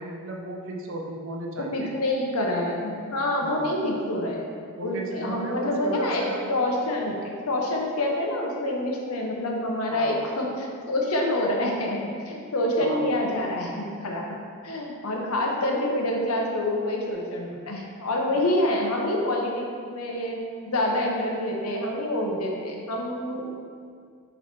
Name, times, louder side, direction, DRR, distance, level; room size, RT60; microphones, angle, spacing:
voice 1, 0.0-1.9 3.4-3.8 4.8-6.7 9.9-10.2 12.8-13.1, right 2 dB, 60° right, 0 dB, 0.7 m, -35 dB
voice 2, 1.6-4.4 4.8-6.2 6.5-12.0 12.3-14.2 14.6-20.4 20.7-23.5, left 1 dB, 80° left, -1 dB, 1.0 m, -27 dB
7.0 x 3.3 x 4.4 m, 2.2 s
head